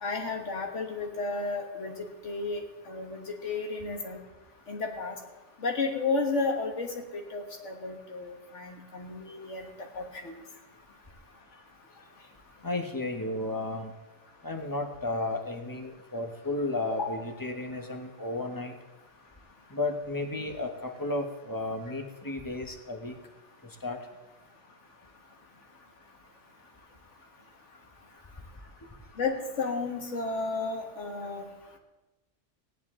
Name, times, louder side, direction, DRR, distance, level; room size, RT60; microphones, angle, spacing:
voice 1, 0.0-1.9 2.2-2.6 2.9-4.2 4.7-5.2 5.6-6.9 7.3-9.7 10.0-10.4 16.9-17.0 29.2-31.4, left 3 dB, 75° left, 2 dB, 1.9 m, -32 dB
voice 2, 12.6-13.9 14.4-18.7 19.7-23.1 23.8-24.0, left 2 dB, 20° left, 4 dB, 1.1 m, -33 dB
17.0 x 10.5 x 3.7 m, 1.1 s
omnidirectional pair, 1.2 m